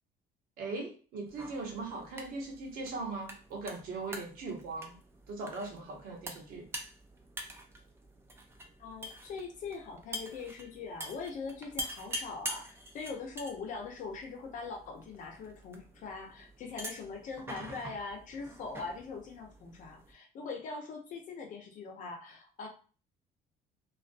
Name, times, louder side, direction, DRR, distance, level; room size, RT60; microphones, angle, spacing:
voice 1, 0.6-5.0 5.3-6.6, right 3 dB, 65° right, 1 dB, 0.9 m, -39 dB
sound 1, 1.3-20.1, right 1 dB, 15° right, 0.4 m, -46 dB
voice 2, 8.8-22.7, left 4 dB, 55° left, 2 dB, 0.7 m, -42 dB
2.5 x 2.2 x 2.5 m, 0.38 s
cardioid pair, 135°, 16 cm